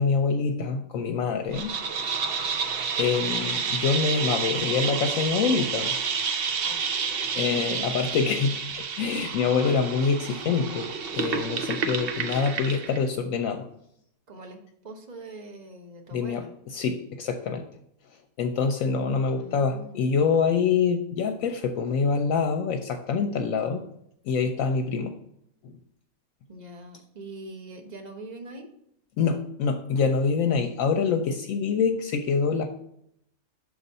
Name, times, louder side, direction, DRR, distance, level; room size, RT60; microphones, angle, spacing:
voice 1, 0.0-1.7 3.0-5.9 7.3-13.7 16.1-17.7 18.4-23.8 24.2-25.1 25.6-25.7 29.2-32.6, left 5 dB, 70° left, 5 dB, 0.9 m, -25 dB
sound 1, 1.5-13.0, right 6 dB, 60° right, 0.6 m, -30 dB
voice 2, 7.5-7.9 14.3-16.5 19.3-20.0 26.5-28.7, right 2 dB, 35° right, 4 dB, 0.9 m, -42 dB
6.4 x 4.0 x 5.4 m, 0.73 s
omnidirectional pair, 1.5 m